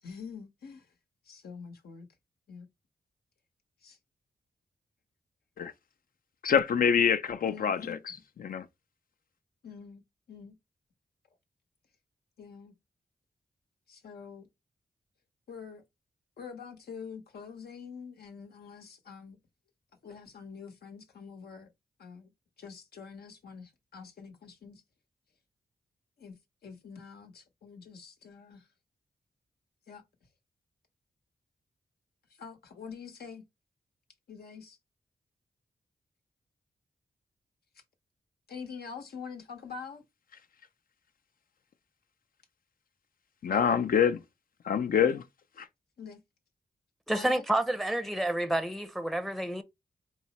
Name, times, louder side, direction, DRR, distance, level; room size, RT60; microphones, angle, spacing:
voice 1, 0.0-0.9 1.2-2.1 2.5-2.7 3.8-4.0 7.4-8.0 9.6-10.0 10.3-10.5 12.4-12.7 13.9-14.5 15.5-15.8 16.4-19.4 20.0-21.7 22.0-22.3 22.6-24.8 26.2-26.3 26.6-28.7 29.9-30.0 32.4-33.4 34.3-34.8 37.7-37.8 38.5-40.0 43.5-43.8 44.9-45.2 46.0-46.2 47.1-47.4, left 6 dB, 80° left, 0.9 m, -45 dB
voice 2, 6.4-8.0 8.4-8.6 43.4-44.2 44.7-45.2, left 7 dB, 65° left, 0.5 m, -25 dB
voice 3, 47.1-49.6, right 1 dB, ahead, 0.6 m, -29 dB
4.6 x 2.0 x 4.1 m
cardioid pair, 55°, 16 cm